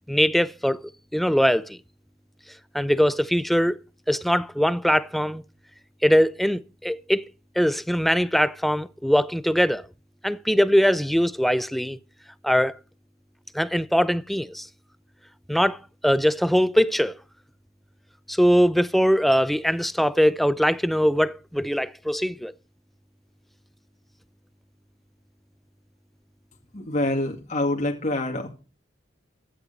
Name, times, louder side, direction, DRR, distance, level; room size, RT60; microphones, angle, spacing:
voice 1, 0.1-0.8 1.1-1.8 2.7-3.8 4.1-5.4 6.0-7.2 7.6-9.8 10.2-12.0 12.4-12.7 13.5-14.7 15.5-15.8 16.0-17.2 18.3-22.5, equal, ahead, 0.5 m, -21 dB
voice 2, 26.7-28.5, left 1 dB, 40° left, 2.1 m, -26 dB
15.5 x 11.0 x 4.0 m
head